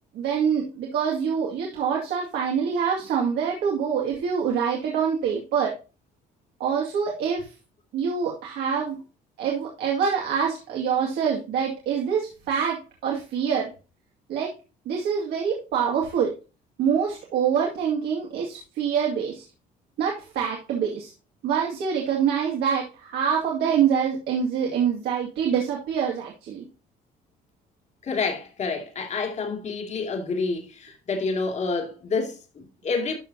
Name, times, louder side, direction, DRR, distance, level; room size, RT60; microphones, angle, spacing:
voice 1, 0.1-5.7 6.6-7.5 7.9-9.0 9.4-13.7 14.3-14.5 14.9-16.3 16.8-19.4 20.0-21.1 21.4-26.6, right 7 dB, 75° right, 2.3 m, -25 dB
voice 2, 28.0-33.1, left 4 dB, 45° left, 2.5 m, -28 dB
12.5 x 5.6 x 2.8 m
cardioid pair, 110°, 17 cm